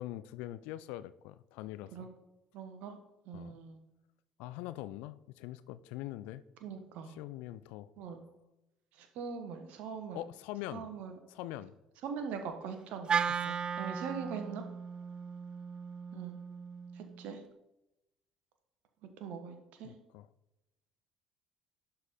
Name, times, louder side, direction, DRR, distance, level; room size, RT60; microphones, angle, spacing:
voice 1, 0.0-2.1 3.3-3.6 4.4-6.4 7.1-7.9 10.1-10.9 11.3-11.7 13.5-13.6 19.8-20.3, left 14 dB, 65° left, 16 dB, 0.3 m, -43 dB
voice 2, 2.5-3.0 3.3-3.8 6.6-7.1 8.0-8.2 9.0-10.2 10.7-11.1 12.0-13.1 13.8-14.6 16.1-16.4 16.9-17.4 19.2-20.0, right 6 dB, 60° right, 6 dB, 1.2 m, -41 dB
Wind instrument woodwind instrument, 13.1-17.3, right 6 dB, 35° right, 0.4 m, -36 dB
11.5 x 4.1 x 4.1 m, 0.91 s
figure-of-eight pair, 55°, 3 cm